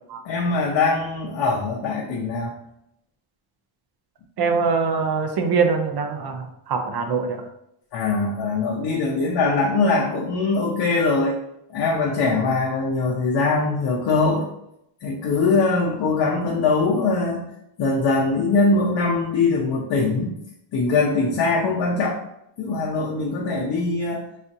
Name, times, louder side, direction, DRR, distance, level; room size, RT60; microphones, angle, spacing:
voice 1, 0.2-2.5 7.9-11.4 11.7-14.5 15.0-17.4 17.8-20.3 20.7-22.2 22.6-24.2, left 3 dB, 60° left, -2 dB, 0.6 m, -22 dB
voice 2, 4.4-7.5, right 5 dB, 55° right, 5 dB, 0.5 m, -23 dB
4.1 x 2.4 x 2.6 m, 0.78 s
wide cardioid pair, 150°, 49 cm